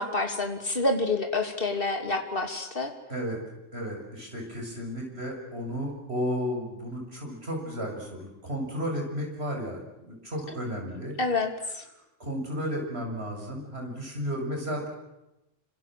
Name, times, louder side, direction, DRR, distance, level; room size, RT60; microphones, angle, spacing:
voice 1, 0.0-2.9 10.5-10.6 11.2-11.8, left 2 dB, 45° left, 5 dB, 3.0 m, -28 dB
voice 2, 3.7-11.2 12.2-14.9, equal, 55° right, 1 dB, 7.1 m, -33 dB
27.0 x 25.5 x 7.6 m, 0.94 s
omnidirectional pair, 1.3 m